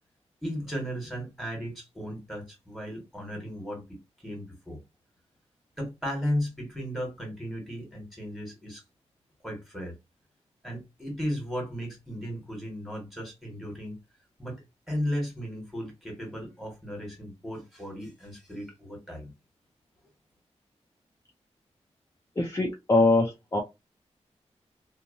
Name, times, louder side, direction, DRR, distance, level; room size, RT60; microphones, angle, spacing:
voice 1, 0.4-4.8 5.8-8.8 9.4-9.9 10.6-14.0 14.4-14.6 14.9-19.3, equal, ahead, 1.6 m, -35 dB
voice 2, 22.4-23.6, left 2 dB, 25° left, 0.6 m, -23 dB
2.8 x 2.2 x 2.6 m
wide cardioid pair, 100°, 12 cm